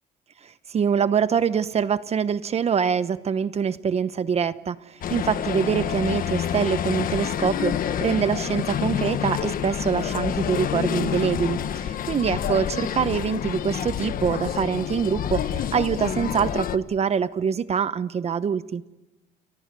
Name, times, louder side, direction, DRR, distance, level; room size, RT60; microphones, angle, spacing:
voice 1, 0.4-18.8, right 7 dB, 40° right, 13 dB, 0.9 m, -25 dB
sound 1, 5.0-16.8, left 9 dB, 55° left, 1.4 m, -28 dB
30.0 x 22.5 x 6.9 m, 1.0 s
cardioid pair, 110°, 17 cm